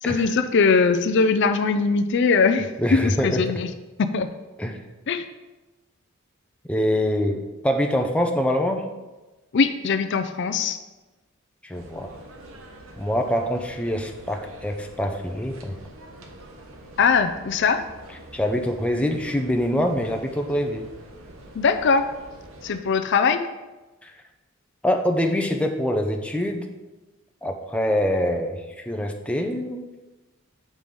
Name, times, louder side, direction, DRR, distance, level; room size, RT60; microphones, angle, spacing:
voice 1, 0.0-3.7 4.0-4.3 5.1-5.3 9.5-10.8 17.0-17.8 21.5-22.1 22.6-23.5, left 5 dB, 60° left, 8 dB, 0.4 m, -21 dB
voice 2, 2.8-3.4 4.6-4.8 6.7-8.8 11.6-12.1 13.0-15.8 18.3-20.9 24.0-24.1 24.8-26.7 27.4-29.9, equal, 5° left, 3 dB, 0.6 m, -24 dB
sound 1, 11.7-22.8, right 1 dB, 85° right, 1.1 m, -45 dB
7.5 x 4.9 x 5.4 m, 1.1 s
head